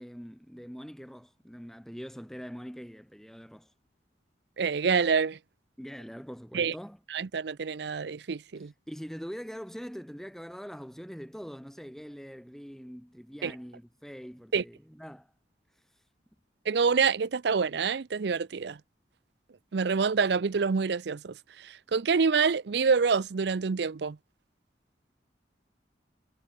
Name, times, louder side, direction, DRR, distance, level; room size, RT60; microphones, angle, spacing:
voice 1, 0.0-3.7 5.8-7.0 8.5-15.3 15.7-16.0, equal, ahead, 5.7 m, -43 dB
voice 2, 4.6-5.4 6.5-6.7 7.1-8.7 13.4-13.5 14.5-14.6 16.7-18.8 19.7-21.3 21.6-24.2, right 5 dB, 65° right, 0.5 m, -26 dB
head